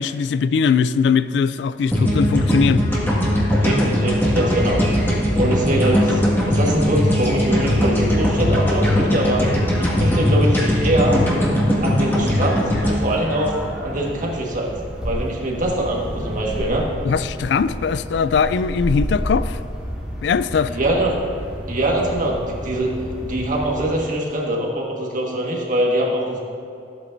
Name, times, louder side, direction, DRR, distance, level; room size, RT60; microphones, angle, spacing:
voice 1, 0.0-2.8 17.0-19.6 20.2-20.8, left 6 dB, 75° left, 15 dB, 0.3 m, -20 dB
sound 1, 1.9-14.1, equal, 15° left, 1.8 m, -19 dB
voice 2, 3.6-4.9 5.3-6.2 6.5-9.5 9.8-11.2 11.8-13.6 13.8-14.7 15.0-16.9 20.7-21.3 21.7-26.4, right 1 dB, 50° right, -1 dB, 1.6 m, -23 dB
sound 2, 4.5-23.9, equal, 5° right, 1.9 m, -32 dB
14.0 x 8.4 x 2.6 m, 2.6 s
head